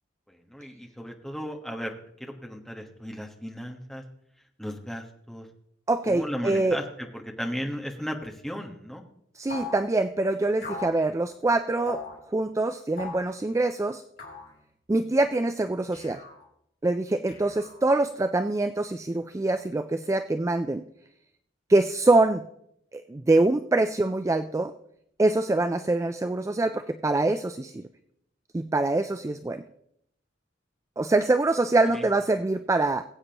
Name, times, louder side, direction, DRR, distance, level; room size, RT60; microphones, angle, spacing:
voice 1, 0.5-4.0 4.6-5.5 6.0-6.8 7.1-9.0 31.9-32.1, equal, ahead, 1 dB, 1.2 m, -35 dB
voice 2, 5.9-6.8 9.4-12.0 12.3-14.0 14.9-16.2 16.8-20.8 21.7-22.4 22.9-24.7 25.2-27.8 28.5-29.6 31.0-33.0, right 2 dB, 15° right, 9 dB, 0.3 m, -24 dB
sound 1, 9.5-9.8 10.6-11.0 11.9-12.2 13.0-13.3 14.2-14.5 15.9-16.4 17.3-18.0, left 3 dB, 55° left, 3.3 m, -39 dB
21.0 x 8.3 x 2.9 m, 0.74 s
head